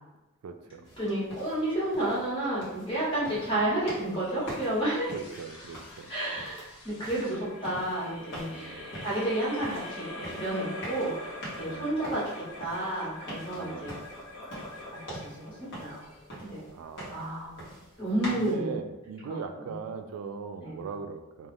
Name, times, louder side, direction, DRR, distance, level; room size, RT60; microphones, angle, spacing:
voice 1, 0.4-0.9 3.5-3.7 5.1-6.1 8.5-9.0 11.6-12.0 13.5-13.9 16.7-17.3 18.3-21.5, right 5 dB, 85° right, 12 dB, 0.3 m, -40 dB
sound 1, 0.8-18.5, equal, 55° left, 1.1 m, -45 dB
voice 2, 1.0-5.1 6.1-14.0 15.1-16.0 16.4-16.7 17.1-17.6 18.0-18.7 19.3-19.4 20.6-20.8, right 1 dB, 25° left, -9 dB, 1.3 m, -31 dB
sound 2, 4.1-16.8, left 1 dB, 85° left, 0.8 m, -44 dB
2.4 x 2.3 x 3.3 m, 1.1 s
head